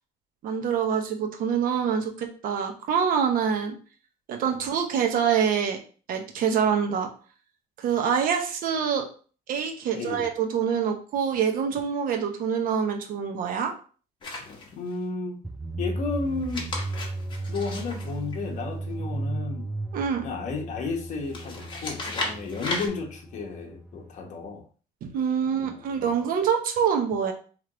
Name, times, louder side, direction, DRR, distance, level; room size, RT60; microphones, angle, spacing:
voice 1, 0.4-3.8 4.3-5.8 6.1-7.1 7.8-9.0 9.5-13.7 19.9-20.2 25.0-27.3, right 7 dB, 60° right, 0.8 m, -25 dB
voice 2, 9.9-10.3 14.7-15.4 15.8-16.7 17.5-19.7 20.2-24.6 25.5-26.1, left 4 dB, 50° left, 1.0 m, -33 dB
sound 1, 14.2-15.0 16.3-18.9 21.3-22.9, left 2 dB, 30° left, 1.2 m, -35 dB
sound 2, 15.4-24.3, right 2 dB, 5° right, 0.3 m, -35 dB
3.4 x 3.1 x 3.7 m
cardioid pair, 125°, 16 cm